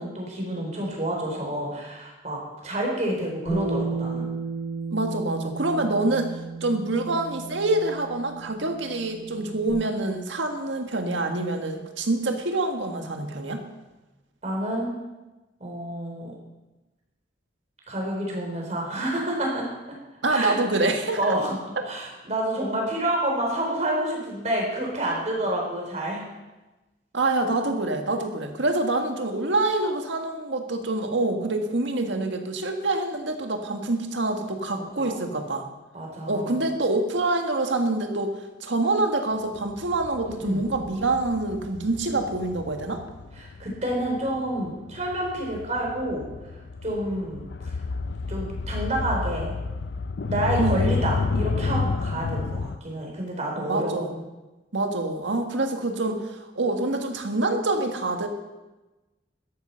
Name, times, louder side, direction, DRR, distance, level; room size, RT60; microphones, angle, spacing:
voice 1, 0.0-4.3 14.4-14.9 15.6-16.3 17.9-19.6 20.3-20.6 21.2-21.6 21.9-26.3 34.7-35.2 35.9-36.6 40.4-40.7 43.4-46.2 46.8-47.8 48.3-49.5 50.2-54.0, right 1 dB, 40° right, -1 dB, 4.1 m, -29 dB
Bass guitar, 3.5-9.7, right 4 dB, 35° left, 5.0 m, -33 dB
voice 2, 4.9-13.6 20.2-21.2 27.1-35.7 36.3-38.4 38.6-43.0 50.5-50.8 53.6-54.2 54.7-58.3, right 2 dB, 85° right, 5 dB, 1.7 m, -26 dB
sound 1, 39.6-52.8, left 4 dB, 65° left, 0.5 m, -31 dB
13.5 x 11.0 x 5.6 m, 1.1 s
head